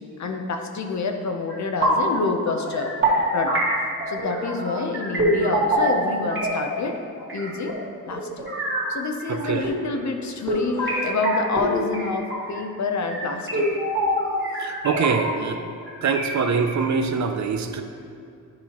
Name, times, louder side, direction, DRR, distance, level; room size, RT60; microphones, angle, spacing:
voice 1, 0.2-2.9 3.3-3.6 4.1-7.0 7.3-7.8 8.1-8.5 8.9-13.7, left 4 dB, 55° left, 4 dB, 0.7 m, -27 dB
sound 1, 1.5-2.2 2.5-6.8 7.2-8.9 9.2-10.0 10.5-12.6 13.1-15.6 15.9-16.8, right 1 dB, 35° right, 1.8 m, -25 dB
voice 2, 9.3-9.7 14.6-15.6 16.0-17.8, right 5 dB, 55° right, 7 dB, 0.5 m, -24 dB
10.5 x 5.5 x 3.0 m, 2.5 s
wide cardioid pair, 120°, 34 cm